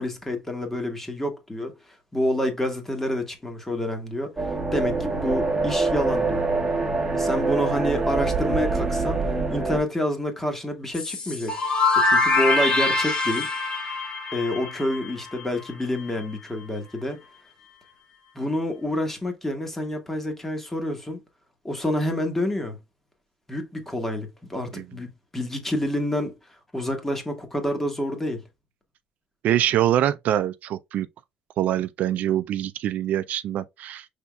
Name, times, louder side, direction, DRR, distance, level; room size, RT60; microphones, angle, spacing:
voice 1, 0.0-1.7 2.1-4.3 4.7-6.5 7.1-9.2 9.5-11.6 11.9-13.5 14.3-17.2 18.3-21.2 21.6-22.8 23.5-26.3 26.7-28.4, left 1 dB, 10° left, 1.3 m, -28 dB
sound 1, 4.4-9.8, right 3 dB, 15° right, 1.0 m, -25 dB
sound 2, 10.9-15.7, left 3 dB, 35° left, 2.1 m, -24 dB
voice 2, 29.4-31.1 31.6-34.1, right 11 dB, 65° right, 0.3 m, -24 dB
5.5 x 3.5 x 2.2 m
cardioid pair, 135°, 3 cm